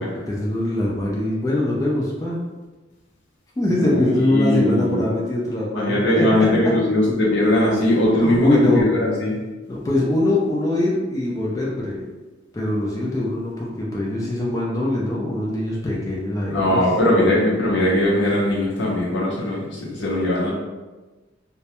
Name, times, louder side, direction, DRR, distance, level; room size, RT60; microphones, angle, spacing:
voice 1, 0.0-2.4 3.6-6.5 8.1-8.8 9.7-12.0 12.5-16.8, left 1 dB, 15° left, -4 dB, 0.3 m, -23 dB
voice 2, 3.8-5.0 5.8-9.3 16.5-20.5, left 1 dB, 65° left, -5 dB, 0.5 m, -20 dB
2.2 x 2.0 x 2.8 m, 1.2 s
head